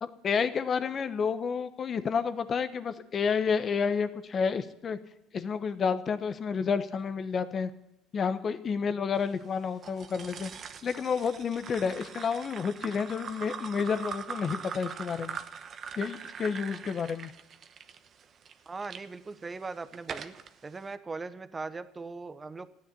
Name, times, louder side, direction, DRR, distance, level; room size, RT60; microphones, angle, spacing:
voice 1, 0.0-5.0 5.3-7.7 8.1-10.5 10.8-15.4 16.0-17.3, left 6 dB, 40° left, 11 dB, 1.1 m, -30 dB
sound 1, 9.8-19.0 19.6-20.5, right 7 dB, 45° right, 0.9 m, -42 dB
voice 2, 18.7-20.3 20.6-22.7, right 3 dB, 20° right, 12 dB, 1.0 m, -39 dB
13.5 x 9.4 x 8.4 m, 0.82 s
supercardioid pair, 95°, 0 cm